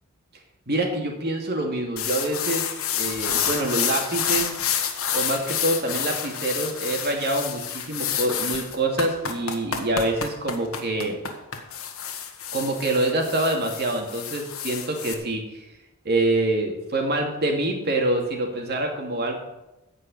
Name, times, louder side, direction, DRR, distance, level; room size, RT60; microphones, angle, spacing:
voice 1, 0.7-2.7 2.9-4.5 5.1-11.2 12.5-15.4 16.0-19.4, right 2 dB, 50° right, 2 dB, 2.6 m, -26 dB
sound 1, 2.0-15.1, left 8 dB, 70° left, 1.6 m, -29 dB
15.0 x 5.5 x 8.5 m, 0.97 s
head